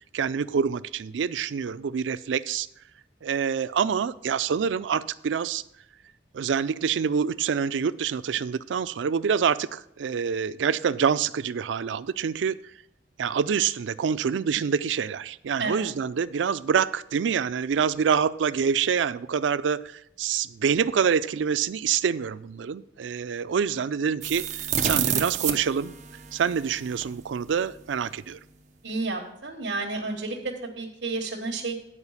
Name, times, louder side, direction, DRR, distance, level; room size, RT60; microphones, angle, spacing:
voice 1, 0.1-2.7 3.2-5.6 6.3-12.6 13.2-25.9 26.3-28.4, right 7 dB, 85° right, 16 dB, 0.4 m, -26 dB
sound 1, 24.2-27.1, right 8 dB, 40° right, 0.7 m, -29 dB
voice 2, 28.8-31.8, right 3 dB, 65° right, -2 dB, 1.3 m, -31 dB
9.8 x 4.8 x 7.1 m, 0.76 s
head